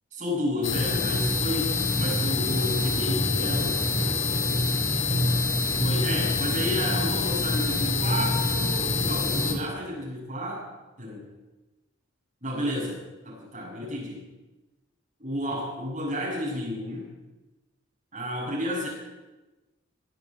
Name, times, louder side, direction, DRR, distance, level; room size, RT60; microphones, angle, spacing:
voice 1, 0.1-1.7 2.0-3.8 5.8-10.7 11.0-11.2 12.4-14.2 15.2-17.1 18.1-18.9, equal, 35° right, -5 dB, 7.9 m, -31 dB
sound 1, 0.6-9.5, left 3 dB, 60° left, 3.0 m, -25 dB
19.5 x 8.7 x 8.5 m, 1.1 s
head